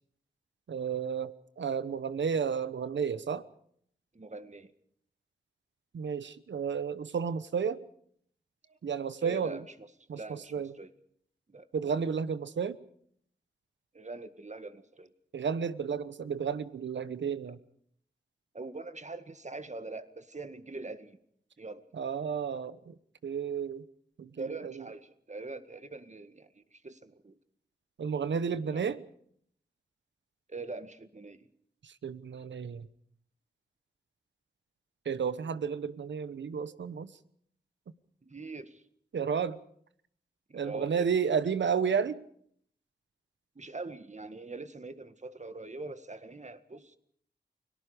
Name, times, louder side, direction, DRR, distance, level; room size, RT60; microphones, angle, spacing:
voice 1, 0.7-3.4 5.9-7.8 8.8-9.6 10.1-10.7 11.7-12.8 15.3-17.6 21.9-22.9 23.2-23.9 24.2-24.8 28.0-29.0 31.8-32.9 35.0-37.1 39.1-39.6 40.5-42.2, right 6 dB, 85° right, 14 dB, 1.0 m, -32 dB
voice 2, 4.1-4.7 8.7-8.8 9.2-10.9 11.5-11.7 13.9-15.1 18.5-21.2 21.6-21.9 24.4-27.4 28.7-28.9 30.5-31.5 38.2-38.8 40.5-41.1 43.6-47.0, right 3 dB, 40° right, 10 dB, 1.9 m, -43 dB
29.5 x 19.0 x 5.1 m, 0.65 s
cardioid pair, 40°, 19 cm